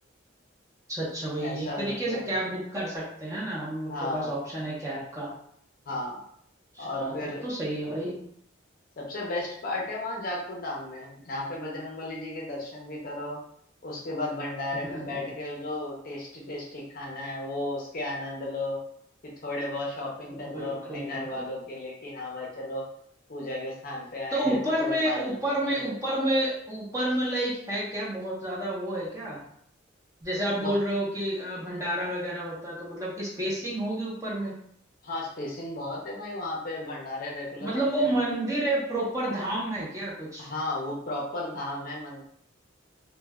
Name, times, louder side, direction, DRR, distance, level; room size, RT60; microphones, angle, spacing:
voice 1, 0.9-5.3 6.7-7.1 7.4-8.2 14.8-15.0 20.4-21.4 24.3-29.4 30.2-34.5 37.6-40.5, right 1 dB, 15° right, -6 dB, 0.6 m, -30 dB
voice 2, 1.4-2.3 3.9-4.4 5.9-6.2 6.8-7.4 9.0-13.4 13.8-18.8 19.4-22.9 23.3-25.5 30.6-30.8 35.0-38.2 40.4-42.2, left 2 dB, 45° left, -3 dB, 0.6 m, -34 dB
3.0 x 2.2 x 2.2 m, 0.68 s
head